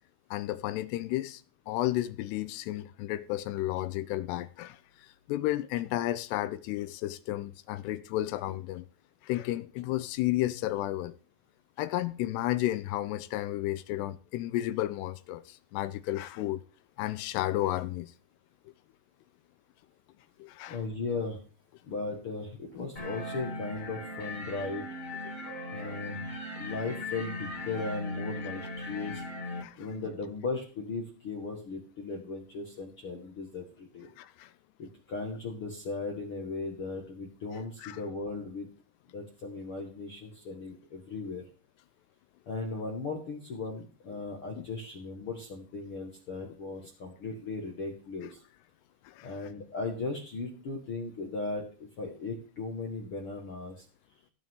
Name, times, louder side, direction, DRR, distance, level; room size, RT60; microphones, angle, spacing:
voice 1, 0.3-1.4 1.7-8.9 9.2-11.2 11.8-16.6 17.0-18.1 20.4-20.8 25.8-25.9 29.6-29.9 34.2-34.5 37.8-38.0 44.6-44.7 49.0-49.3, left 15 dB, 80° left, 2.7 m, -32 dB
voice 2, 20.7-21.4 21.8-24.8 25.7-26.3 26.5-29.2 29.8-34.1 34.8-38.7 39.1-41.4 42.4-48.4 49.2-53.8, left 3 dB, 50° left, 1.7 m, -37 dB
sound 1, 22.9-29.6, left 1 dB, 20° left, 1.3 m, -38 dB
16.5 x 8.5 x 3.7 m
omnidirectional pair, 4.9 m